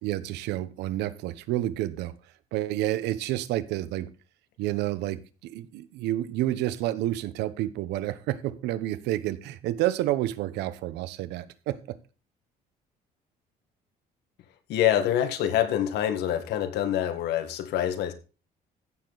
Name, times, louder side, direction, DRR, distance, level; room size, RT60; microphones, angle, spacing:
voice 1, 0.0-2.1 2.5-4.1 4.6-12.0, right 14 dB, 90° right, 1.0 m, -29 dB
voice 2, 14.7-18.1, left 11 dB, 80° left, 1.7 m, -26 dB
15.0 x 6.8 x 4.1 m
cardioid pair, 110°, 17 cm